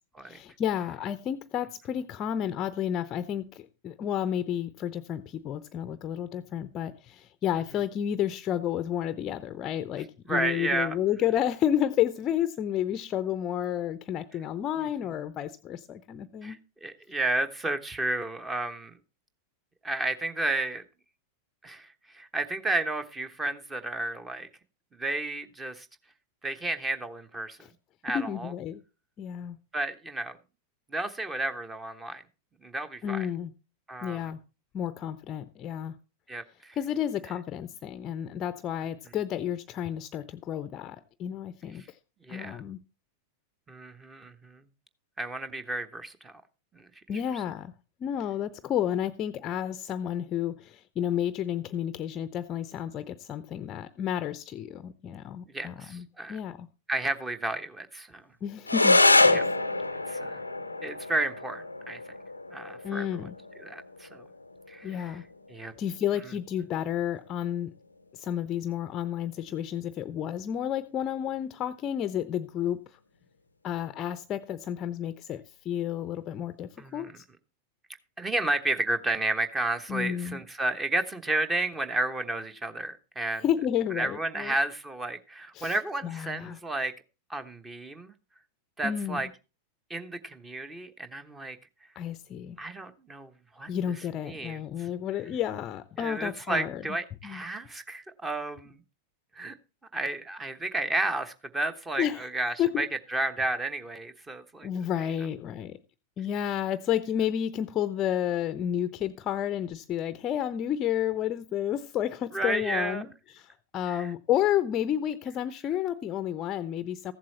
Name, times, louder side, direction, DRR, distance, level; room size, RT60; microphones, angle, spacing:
voice 1, 0.2-16.6 28.1-28.8 29.2-29.6 33.0-33.5 34.0-34.4 34.7-36.0 36.8-42.0 42.3-42.8 47.1-47.7 48.0-56.7 58.4-59.4 62.8-63.3 64.8-65.3 65.8-67.7 68.1-73.0 73.6-77.2 79.9-80.4 83.4-84.5 85.5-85.8 86.0-86.6 88.8-89.2 92.0-92.6 93.7-96.8 97.2-97.4 102.0-102.3 102.6-102.9 104.6-105.8 106.2-113.1 113.3-117.1, left 10 dB, 30° left, 0.6 m, -31 dB
voice 2, 10.3-11.0 14.8-14.9 16.4-16.6 16.8-18.9 19.8-20.8 21.6-21.9 22.1-24.5 24.9-25.9 26.4-27.6 28.0-28.5 29.7-30.4 30.9-32.2 32.6-33.3 33.9-34.3 36.3-36.8 42.2-42.6 43.7-44.6 45.2-46.4 46.7-46.9 47.3-47.4 55.5-56.4 56.9-58.2 59.3-59.4 60.1-60.4 60.8-62.0 62.5-63.1 63.6-64.3 64.7-65.2 65.5-65.7 76.8-77.2 78.2-83.4 83.9-86.9 87.3-88.1 88.8-89.3 89.9-91.6 92.6-93.9 94.3-94.6 96.0-98.8 99.3-99.5 99.9-104.7 112.3-113.1 113.9-114.1, right 2 dB, 15° right, 1.1 m, -32 dB
sound 1, 58.6-67.6, left 2 dB, 85° left, 0.5 m, -27 dB
14.5 x 7.5 x 4.2 m
figure-of-eight pair, 90°, 0 cm